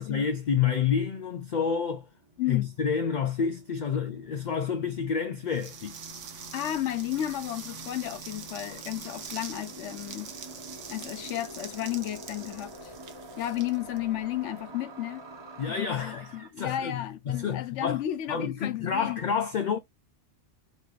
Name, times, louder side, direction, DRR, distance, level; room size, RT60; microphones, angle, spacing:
voice 1, 0.0-2.0 2.5-6.0 15.6-17.0 17.3-18.0 18.3-19.8, left 7 dB, 60° left, 0.5 m, -29 dB
sound 1, 1.3-16.5, right 1 dB, 25° right, 0.8 m, -48 dB
voice 2, 2.4-2.7 6.5-10.3 10.9-12.9 13.4-15.3 15.7-19.2, left 13 dB, 80° left, 0.9 m, -33 dB
sound 2, 5.5-14.5, right 7 dB, 85° right, 1.1 m, -44 dB
4.1 x 2.5 x 3.1 m
omnidirectional pair, 1.2 m